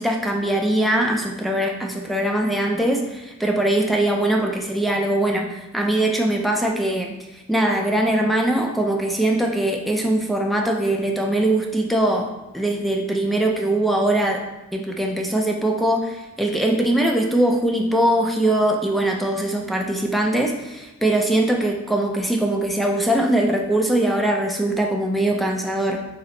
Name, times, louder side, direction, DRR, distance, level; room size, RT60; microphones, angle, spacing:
voice 1, 0.0-14.5 14.7-26.0, right 1 dB, ahead, 1 dB, 0.3 m, -21 dB
5.6 x 2.0 x 3.8 m, 1.0 s
head